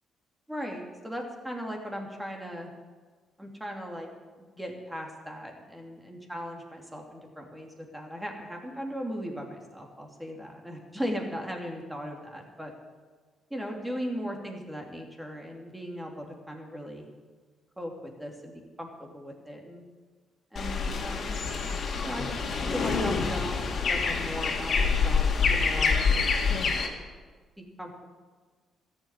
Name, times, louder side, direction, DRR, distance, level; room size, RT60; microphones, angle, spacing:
voice 1, 0.5-2.7 3.4-4.1 4.4-12.7 13.5-17.1 17.8-17.9 18.2-18.5 18.8-19.8 20.5-21.4 22.0-22.3 22.7-26.2 27.6-28.1, equal, 5° right, 1 dB, 2.9 m, -38 dB
sound 1, 20.6-26.9, left 5 dB, 55° left, 2.2 m, -26 dB
14.0 x 7.5 x 9.7 m, 1.4 s
cardioid pair, 90°, 0 cm